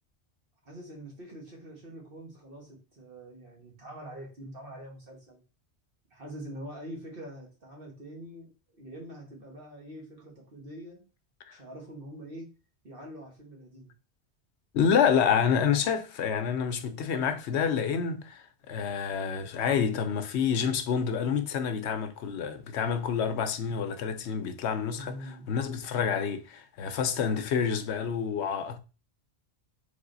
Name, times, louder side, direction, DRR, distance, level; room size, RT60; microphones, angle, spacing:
voice 1, 0.7-5.4 6.1-11.1 11.5-12.5 12.8-13.9 24.9-25.5, right 1 dB, 55° right, 1.7 m, -44 dB
voice 2, 14.7-28.8, left 7 dB, 90° left, 1.0 m, -28 dB
3.7 x 3.5 x 3.9 m
omnidirectional pair, 1.1 m